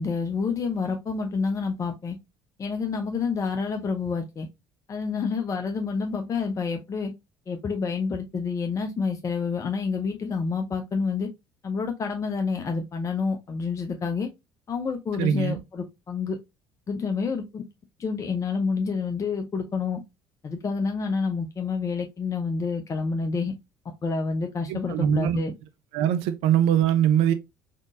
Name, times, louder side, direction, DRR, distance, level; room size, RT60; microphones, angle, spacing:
voice 1, 0.0-2.2 2.6-4.5 4.9-7.1 7.5-11.3 11.6-14.3 14.7-16.4 16.9-17.6 18.0-20.0 20.4-23.5 24.0-25.5, left 5 dB, 25° left, 0.6 m, -28 dB
voice 2, 15.2-15.6 24.7-25.4 25.9-27.3, right 9 dB, 55° right, 0.4 m, -22 dB
3.7 x 3.6 x 2.3 m
figure-of-eight pair, 55°, 13 cm